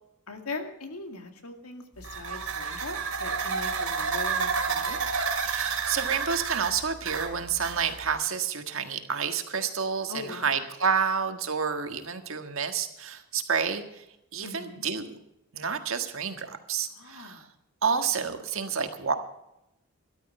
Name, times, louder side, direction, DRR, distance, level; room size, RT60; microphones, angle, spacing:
voice 1, 0.3-5.0 10.1-10.6 14.4-14.8 16.9-17.5 18.2-18.3, left 3 dB, 90° left, 6 dB, 2.1 m, -40 dB
sound 1, 2.0-8.2, right 5 dB, 85° right, 2.9 m, -30 dB
voice 2, 5.4-13.8 14.3-15.2 15.5-17.4 17.8-19.1, right 6 dB, 65° right, 7 dB, 1.5 m, -29 dB
13.5 x 12.0 x 6.6 m, 0.85 s
head